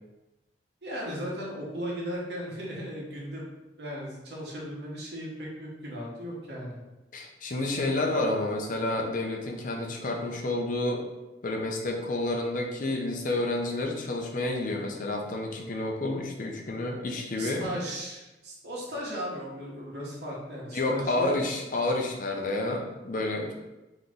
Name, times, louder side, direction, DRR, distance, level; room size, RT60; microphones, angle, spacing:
voice 1, 0.8-6.8 17.4-21.3, equal, 70° right, -4 dB, 1.2 m, -36 dB
voice 2, 7.1-11.0 11.4-17.6 20.7-23.5, left 2 dB, 50° left, 1 dB, 0.6 m, -29 dB
3.9 x 3.0 x 3.7 m, 1.1 s
head